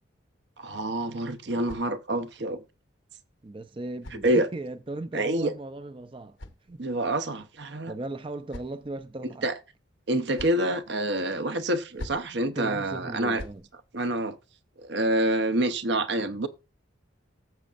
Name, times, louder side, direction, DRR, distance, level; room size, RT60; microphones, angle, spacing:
voice 1, 0.6-2.6 4.2-4.5 5.1-5.5 6.8-7.9 9.4-9.6 10.1-13.4 13.9-14.4 14.8-16.5, right 1 dB, 60° right, 0.8 m, -27 dB
sound 1, 1.3-2.4 3.4-4.9 5.8-7.2 8.0-9.1 10.0-10.7 11.7-12.4 13.1-13.7, left 1 dB, 70° left, 1.0 m, -47 dB
voice 2, 3.4-6.4 6.7-6.8 7.9-9.5 12.6-13.6, right 2 dB, 25° right, 0.5 m, -37 dB
15.5 x 7.4 x 2.5 m
head